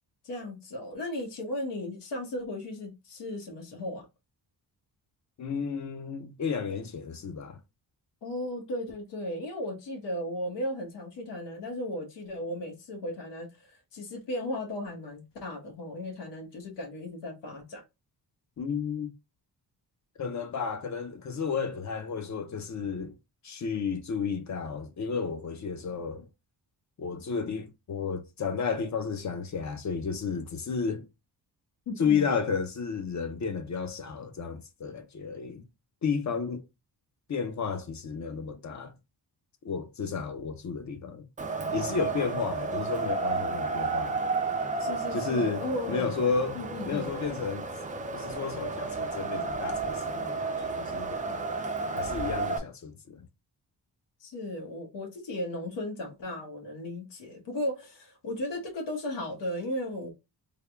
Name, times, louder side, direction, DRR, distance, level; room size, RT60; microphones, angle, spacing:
voice 1, 0.2-4.1 8.2-17.8 31.9-32.3 44.8-46.2 46.5-47.1 54.2-60.1, left 1 dB, 85° left, 1.2 m, -36 dB
voice 2, 5.4-7.6 18.6-19.1 20.2-23.1 23.4-26.3 27.0-31.1 32.0-35.6 36.0-36.6 37.3-38.9 39.6-41.3 41.7-44.2 45.1-47.7 48.1-51.2 51.9-53.2, left 5 dB, 45° left, 0.6 m, -32 dB
Wind, 41.4-52.6, right 3 dB, 20° right, 0.3 m, -32 dB
3.5 x 2.2 x 3.4 m
wide cardioid pair, 165°, 41 cm